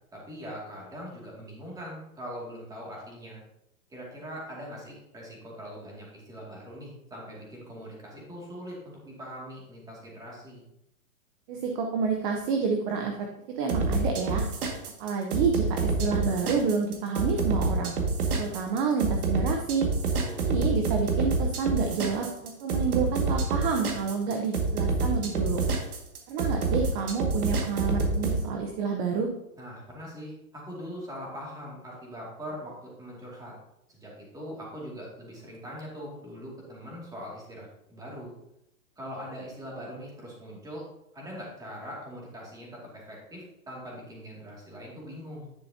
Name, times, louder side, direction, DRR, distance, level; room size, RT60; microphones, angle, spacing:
voice 1, 0.1-3.4 3.9-10.6 20.1-20.4 29.6-33.5 33.9-38.3 39.0-40.9 41.1-45.5, equal, 10° right, -4 dB, 2.3 m, -42 dB
voice 2, 11.5-14.4 15.0-17.9 18.3-19.9 20.4-25.6 26.3-29.3, right 5 dB, 35° right, 3 dB, 0.8 m, -29 dB
sound 1, 13.7-28.4, right 4 dB, 80° right, 2.1 m, -27 dB
10.5 x 6.8 x 2.8 m, 0.85 s
hypercardioid pair, 145°, 44 cm